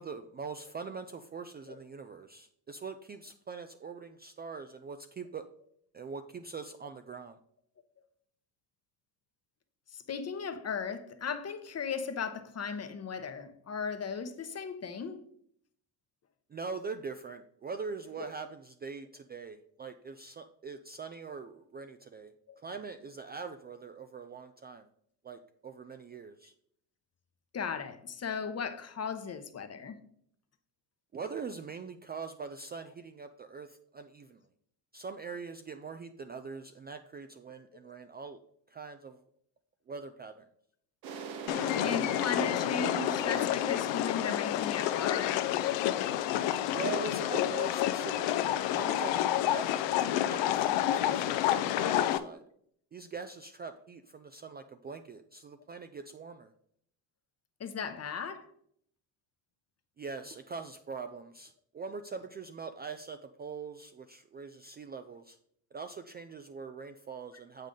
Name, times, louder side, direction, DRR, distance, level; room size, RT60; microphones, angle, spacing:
voice 1, 0.0-5.4 5.9-7.4 16.5-22.3 22.6-24.9 25.2-26.5 31.1-34.4 34.9-38.4 38.7-39.2 39.9-40.5 46.7-48.3 48.7-52.4 52.9-56.5 60.0-65.4 65.7-67.7, right 5 dB, 20° right, 0.4 m, -42 dB
voice 2, 9.9-15.2 22.5-22.6 27.5-30.0 41.8-45.4 57.6-58.5, left 5 dB, 30° left, 0.9 m, -37 dB
sound 1, 41.0-46.5, right 5 dB, 75° right, 1.1 m, -44 dB
sound 2, 41.5-52.2, left 12 dB, 65° left, 0.6 m, -29 dB
7.3 x 5.5 x 3.7 m
hypercardioid pair, 55°, 47 cm